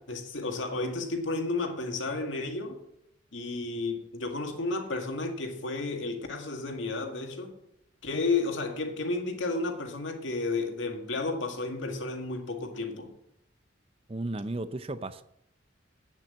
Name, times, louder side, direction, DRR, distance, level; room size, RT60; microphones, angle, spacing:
voice 1, 0.0-2.8 3.3-7.5 8.0-13.1, left 3 dB, 75° left, 2.0 m, -32 dB
voice 2, 14.1-15.2, right 2 dB, 30° right, 0.6 m, -34 dB
8.9 x 7.5 x 8.6 m
head